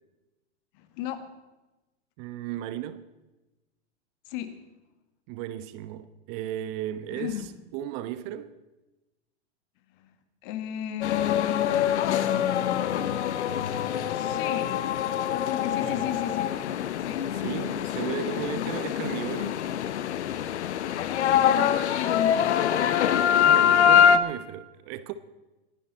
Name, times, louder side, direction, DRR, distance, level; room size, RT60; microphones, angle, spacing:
voice 1, 0.7-1.3 4.3-4.6 7.1-7.5 9.9-10.2 10.4-13.0 14.1-14.9 15.3-16.6 17.0-17.3 21.2-22.6, left 11 dB, 50° left, 1.8 m, -34 dB
voice 2, 2.2-3.1 5.3-7.3 7.7-8.6 15.8-16.0 17.4-19.6 23.4-25.1, right 11 dB, 40° right, 0.9 m, -35 dB
sound 1, 11.0-24.2, left 9 dB, 75° left, 1.0 m, -24 dB
24.0 x 10.5 x 4.3 m
hypercardioid pair, 115°, 35 cm